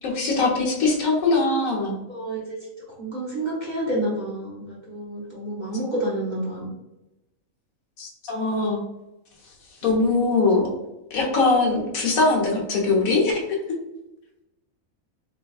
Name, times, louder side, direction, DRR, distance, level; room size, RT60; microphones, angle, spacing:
voice 1, 0.0-2.0 8.0-8.8 9.8-10.7 11.1-13.6, left 3 dB, 80° left, -1 dB, 1.3 m, -21 dB
voice 2, 2.1-6.8 9.8-10.2, right 1 dB, 40° right, -5 dB, 0.8 m, -30 dB
3.4 x 3.1 x 2.3 m, 0.97 s
omnidirectional pair, 1.5 m